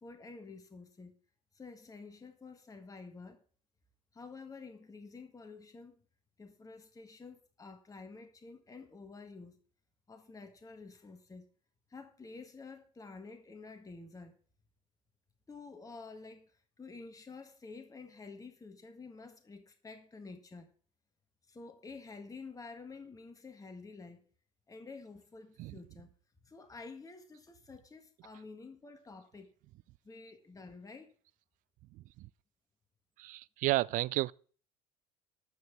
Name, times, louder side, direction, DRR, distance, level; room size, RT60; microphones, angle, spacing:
voice 1, 0.0-1.2 1.5-3.4 4.1-6.0 6.4-9.6 10.1-11.4 11.9-14.4 15.5-20.7 21.5-24.3 24.7-26.1 26.4-29.5 30.0-31.1, left 4 dB, 20° left, 1.6 m, -50 dB
voice 2, 31.9-32.3 33.2-34.3, right 18 dB, 45° right, 0.5 m, -32 dB
13.0 x 5.7 x 7.0 m
figure-of-eight pair, 60°, 19 cm